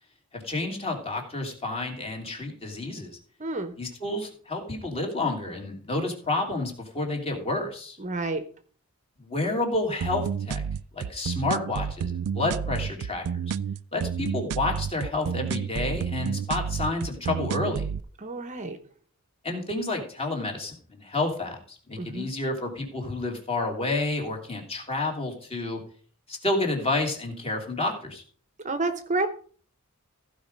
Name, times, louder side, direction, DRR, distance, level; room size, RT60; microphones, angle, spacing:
voice 1, 0.3-3.2 3.8-8.0 9.2-10.6 10.9-13.4 13.9-17.8 19.4-25.8 26.3-28.2, left 2 dB, 25° left, 2 dB, 2.7 m, -30 dB
voice 2, 3.4-3.7 8.0-8.4 18.2-18.8 22.0-22.3 28.6-29.3, right 2 dB, 35° right, 9 dB, 0.8 m, -29 dB
sound 1, 10.0-18.0, right 7 dB, 85° right, 0.4 m, -30 dB
15.0 x 5.1 x 5.2 m, 0.44 s
head